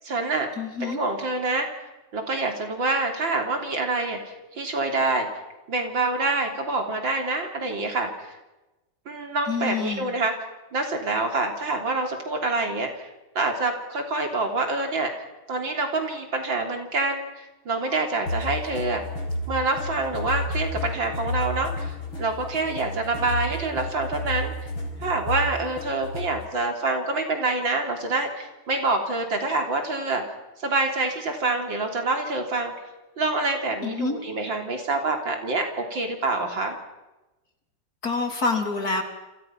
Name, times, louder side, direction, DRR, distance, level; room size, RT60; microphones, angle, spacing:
voice 1, 0.0-0.5 0.8-1.7 2.1-5.3 5.7-8.1 9.1-10.3 10.7-13.1 13.4-15.1 15.5-19.0 19.5-24.5 25.0-30.2 30.6-32.7 33.2-36.8, right 3 dB, 65° right, 4 dB, 4.1 m, -26 dB
voice 2, 0.6-1.0 9.5-10.1 33.8-34.2 38.0-39.0, left 4 dB, 45° left, 4 dB, 3.7 m, -27 dB
sound 1, 18.3-26.5, left 2 dB, 80° left, 6.2 m, -31 dB
29.5 x 26.5 x 6.0 m, 1.1 s
omnidirectional pair, 2.2 m